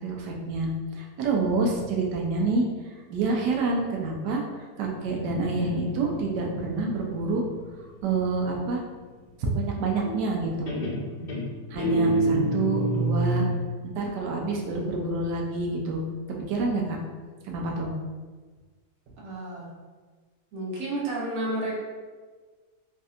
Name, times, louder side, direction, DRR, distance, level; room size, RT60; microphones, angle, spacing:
voice 1, 0.0-2.7 3.1-7.4 8.0-8.8 9.4-10.7 11.7-13.4 13.8-16.0 16.5-17.0 17.4-17.9, right 3 dB, 90° right, 0 dB, 1.2 m, -27 dB
Guitar, 4.9-8.5 10.0-10.4 10.7-13.6, right 2 dB, 45° left, 0.9 m, -29 dB
voice 2, 19.2-19.7 20.5-21.8, right 1 dB, 65° right, -5 dB, 1.2 m, -31 dB
3.2 x 2.7 x 2.4 m, 1.4 s
omnidirectional pair, 1.8 m